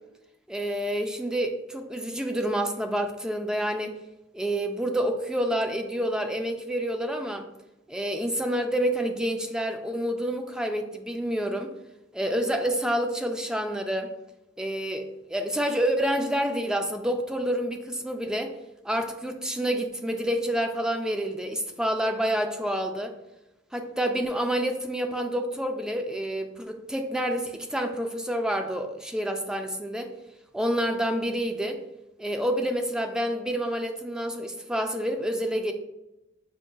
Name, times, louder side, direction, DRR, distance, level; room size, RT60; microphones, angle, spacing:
voice 1, 0.5-3.9 4.3-7.5 7.9-11.7 12.1-14.1 14.6-18.5 18.8-23.1 23.7-30.1 30.5-31.8 32.2-35.7, equal, 5° right, 5 dB, 0.3 m, -28 dB
5.8 x 3.7 x 2.3 m, 0.96 s
head